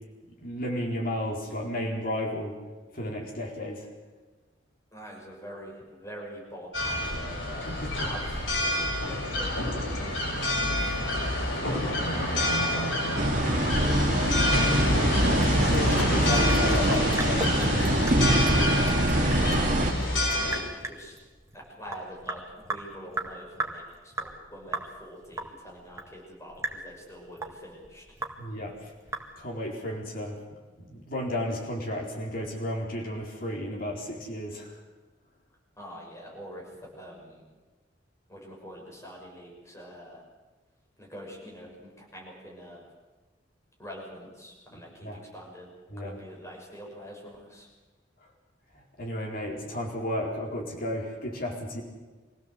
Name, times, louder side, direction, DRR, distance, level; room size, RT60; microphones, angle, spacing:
voice 1, 0.4-2.6 2.9-3.9 7.7-8.1 8.8-9.4 15.4-17.8 28.4-28.9 29.4-30.4 30.8-34.7 44.7-45.2 45.9-46.2 49.0-51.8, left 1 dB, 50° left, -1 dB, 4.5 m, -33 dB
voice 2, 4.9-8.4 9.3-14.8 18.4-19.8 20.8-21.1 21.5-28.0 35.8-36.7 37.0-37.4 38.3-40.2 41.0-42.9 43.8-45.7 46.0-47.7, equal, 15° left, -2 dB, 6.1 m, -45 dB
sound 1, 6.7-20.6, left 1 dB, 80° left, 7.0 m, -27 dB
sound 2, 13.2-19.9, right 1 dB, 45° right, 1.9 m, -24 dB
Sink (filling or washing) / Drip, 15.2-29.7, right 2 dB, 15° right, 2.0 m, -38 dB
25.0 x 17.0 x 7.9 m, 1.3 s
head